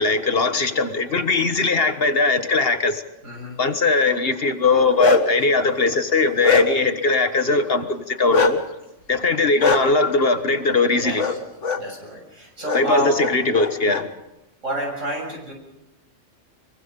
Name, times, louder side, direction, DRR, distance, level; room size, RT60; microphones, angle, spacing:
voice 1, 0.0-3.0 3.6-8.6 9.1-11.3 12.7-14.1, left 3 dB, 50° left, 1.6 m, -20 dB
voice 2, 3.2-3.6 11.0-11.2 11.8-13.2 14.6-15.5, right 1 dB, 85° right, 7.6 m, -28 dB
Bark, 4.7-5.4 5.9-7.0 8.3-8.5 9.6-9.8 11.2-11.4 11.6-11.8 12.6-12.8 13.2-14.0, left 4 dB, 75° left, 2.1 m, -21 dB
25.5 x 23.0 x 5.4 m
omnidirectional pair, 1.3 m